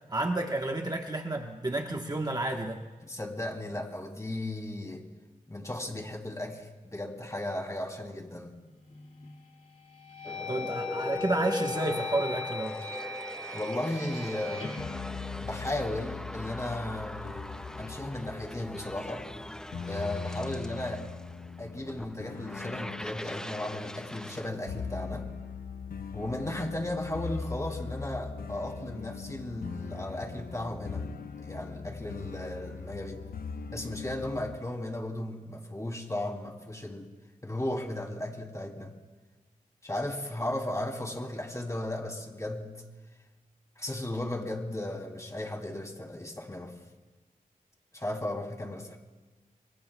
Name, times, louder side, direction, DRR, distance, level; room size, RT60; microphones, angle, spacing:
voice 1, 0.1-2.8 10.5-12.8, right 2 dB, 25° right, 2 dB, 1.2 m, -31 dB
voice 2, 3.0-5.0 5.5-8.5 13.5-14.7 15.4-17.4 17.8-19.2 19.9-21.0 21.6-25.3 26.1-31.0 31.4-33.2 33.7-37.1 37.4-38.9 39.8-42.8 43.8-46.7 47.9-49.0, left 1 dB, 20° left, 2 dB, 3.0 m, -35 dB
sound 1, 8.9-9.3 9.8-16.0, left 5 dB, 60° left, 2.4 m, -39 dB
sound 2, 10.2-24.5, left 1 dB, 5° left, 0.4 m, -40 dB
sound 3, 14.8-34.6, left 5 dB, 80° left, 0.6 m, -41 dB
26.5 x 23.5 x 2.3 m, 1.3 s
cardioid pair, 65°, 15 cm